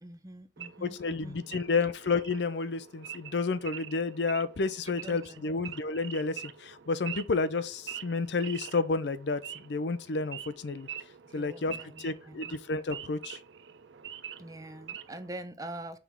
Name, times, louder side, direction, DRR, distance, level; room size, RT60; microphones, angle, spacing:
voice 1, 0.0-1.8 4.9-5.6 11.3-12.6 14.4-16.0, right 1 dB, 20° right, 0.6 m, -45 dB
Wild animals / Idling, 0.6-15.3, right 9 dB, 80° right, 0.5 m, -45 dB
voice 2, 0.8-10.9 11.3-13.4, left 4 dB, 70° left, 0.6 m, -31 dB
6.0 x 3.5 x 4.5 m
head